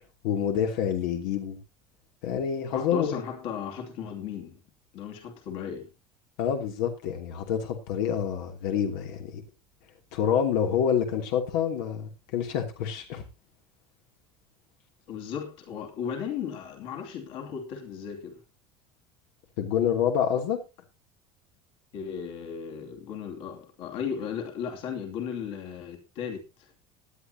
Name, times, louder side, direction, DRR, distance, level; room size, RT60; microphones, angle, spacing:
voice 1, 0.2-1.6 2.2-3.2 6.4-9.4 10.1-13.2 19.6-20.6, left 8 dB, 85° left, 2.9 m, -27 dB
voice 2, 2.7-4.6 4.9-5.9 15.1-18.4 21.9-26.7, left 7 dB, 55° left, 2.8 m, -36 dB
18.5 x 10.5 x 2.8 m
cardioid pair, 175°, 11 cm